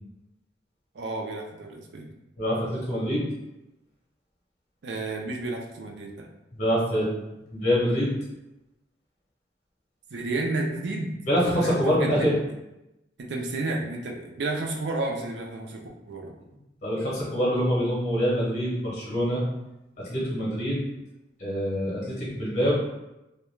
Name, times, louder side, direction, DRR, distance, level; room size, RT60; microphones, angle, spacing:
voice 1, 0.9-2.1 4.8-6.1 10.1-11.1 11.6-12.4 13.2-16.3, right 2 dB, 75° right, 1 dB, 0.4 m, -31 dB
voice 2, 2.4-3.2 6.5-7.1 7.5-8.1 11.3-12.3 16.8-19.4 20.1-20.8 21.4-22.7, equal, 40° left, -5 dB, 0.7 m, -25 dB
2.2 x 2.2 x 3.0 m, 0.94 s
head